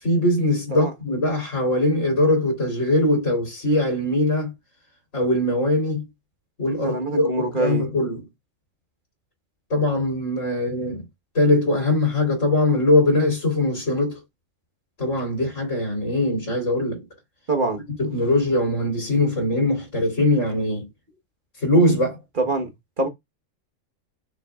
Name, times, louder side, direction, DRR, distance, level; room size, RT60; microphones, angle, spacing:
voice 1, 0.0-4.5 5.1-6.0 6.6-8.2 9.7-11.0 11.3-14.2 15.0-17.0 18.0-20.9 21.6-22.2, left 1 dB, 65° left, 3.6 m, -21 dB
voice 2, 6.8-7.9 17.5-17.8 22.4-22.7 23.0-23.1, right 2 dB, 40° right, 1.3 m, -24 dB
7.0 x 6.3 x 2.4 m
omnidirectional pair, 1.4 m